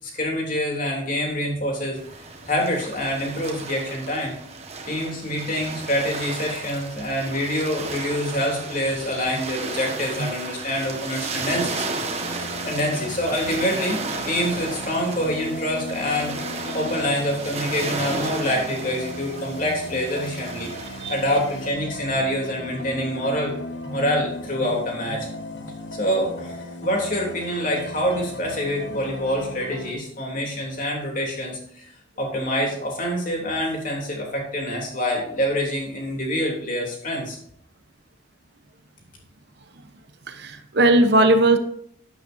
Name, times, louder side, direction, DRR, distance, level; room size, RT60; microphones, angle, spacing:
voice 1, 0.0-2.0 2.5-4.3 4.8-12.0 12.7-14.0 14.2-16.4 16.7-20.7 21.1-23.5 23.9-25.3 25.9-31.9 32.2-37.4, equal, 40° left, 0 dB, 3.3 m, -26 dB
sound 1, 2.0-21.7, right 3 dB, 30° right, 1.5 m, -34 dB
sound 2, 12.2-29.9, left 2 dB, 60° left, 1.5 m, -36 dB
voice 2, 40.3-41.6, right 2 dB, 55° right, 7 dB, 1.0 m, -18 dB
12.0 x 10.0 x 2.8 m, 0.67 s
head